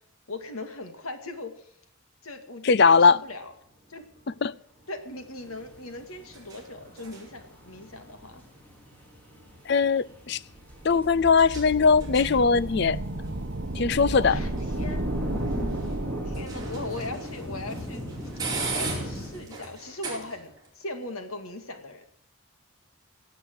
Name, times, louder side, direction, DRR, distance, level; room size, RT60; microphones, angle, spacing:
voice 1, 0.3-1.7 2.2-3.5 3.9-4.0 4.9-8.4 14.2-15.0 16.2-18.1 18.4-22.1, left 2 dB, 90° left, 2.3 m, -39 dB
voice 2, 2.6-3.2 4.4-4.5 9.7-10.4 10.8-13.0 13.7-14.4, left 5 dB, 50° left, 0.5 m, -20 dB
Elevator Door Broken, 3.2-20.7, right 4 dB, 15° right, 4.6 m, -42 dB
sound 1, 5.2-19.4, equal, 5° left, 3.1 m, -40 dB
sound 2, 10.6-17.1, right 2 dB, 55° right, 1.1 m, -33 dB
16.5 x 8.3 x 7.9 m
head